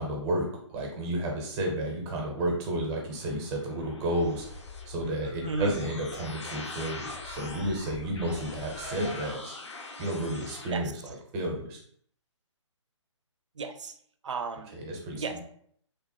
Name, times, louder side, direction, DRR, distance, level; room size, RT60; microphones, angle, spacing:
voice 1, 0.0-4.5 4.9-9.6 10.0-11.8 14.7-15.4, right 1 dB, 20° right, 0 dB, 0.6 m, -32 dB
sound 1, 3.0-10.7, left 3 dB, 65° left, 0.6 m, -43 dB
Laughter, 4.8-6.5 6.8-8.3 8.7-11.0, left 1 dB, 80° left, 1.5 m, -47 dB
voice 2, 5.4-5.8 10.7-10.9 13.6-14.0 14.2-14.8 15.1-15.4, right 4 dB, 70° right, 9 dB, 0.4 m, -34 dB
2.9 x 2.1 x 2.8 m, 0.63 s
figure-of-eight pair, 140°, 16 cm